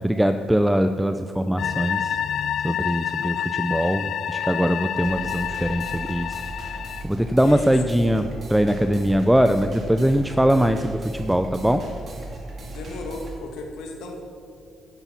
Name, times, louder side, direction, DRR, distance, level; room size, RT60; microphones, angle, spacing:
voice 1, 0.0-2.2 2.6-6.4 7.0-11.8, equal, 5° right, 8 dB, 0.5 m, -22 dB
sound 1, 1.6-7.0, left 9 dB, 70° left, 0.4 m, -28 dB
sound 2, 5.0-13.4, right 2 dB, 50° right, 2.7 m, -37 dB
voice 2, 7.4-7.7 12.6-14.2, left 2 dB, 85° left, 2 dB, 1.7 m, -35 dB
11.5 x 10.0 x 6.0 m, 2.4 s
cardioid pair, 90°, 0 cm